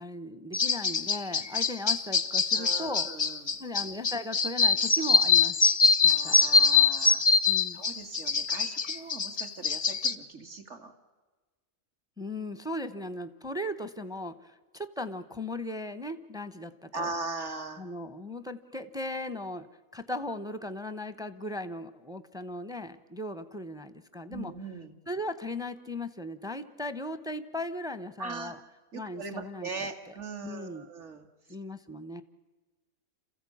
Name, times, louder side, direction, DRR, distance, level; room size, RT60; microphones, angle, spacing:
voice 1, 0.0-3.1 3.6-5.6 6.0-6.4 7.5-7.8 12.2-17.1 17.8-19.7 19.9-24.5 25.1-28.6 28.9-29.7 30.4-30.9 31.5-32.2, left 1 dB, 5° right, 11 dB, 0.7 m, -37 dB
sound 1, 0.5-10.1, left 5 dB, 35° left, 0.7 m, -24 dB
voice 2, 2.5-3.6 6.0-7.2 7.7-10.9 16.9-17.8 24.3-25.0 28.2-28.5 28.9-31.3, right 3 dB, 50° right, 5 dB, 2.3 m, -40 dB
27.5 x 15.0 x 8.6 m, 1.3 s
omnidirectional pair, 1.6 m